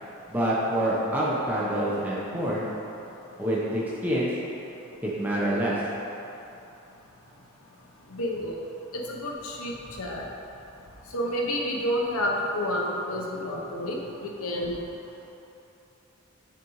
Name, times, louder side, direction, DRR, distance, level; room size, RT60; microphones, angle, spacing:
voice 1, 0.3-2.7 3.4-4.3 5.0-5.8, right 1 dB, 10° right, -7 dB, 0.8 m, -26 dB
voice 2, 8.1-8.6 8.9-9.7 10.0-10.2 11.1-14.0 14.4-14.8, equal, 90° left, -1 dB, 0.9 m, -29 dB
8.3 x 5.1 x 3.1 m, 2.9 s
head